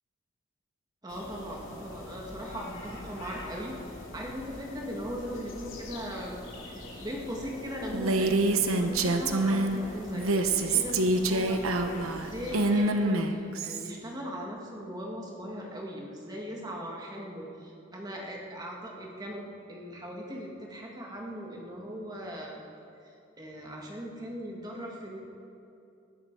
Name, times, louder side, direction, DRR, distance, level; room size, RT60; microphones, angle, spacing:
voice 1, 1.0-6.4 6.6-8.3 8.7-22.6 23.0-25.2, equal, 20° right, -1 dB, 1.9 m, -39 dB
sound 1, 1.1-12.7, left 1 dB, 70° left, 3.0 m, -44 dB
Female speech woman speaking, 7.9-9.8 10.1-13.9, right 2 dB, 90° right, 0.9 m, -26 dB
20.5 x 11.0 x 4.7 m, 2.6 s
head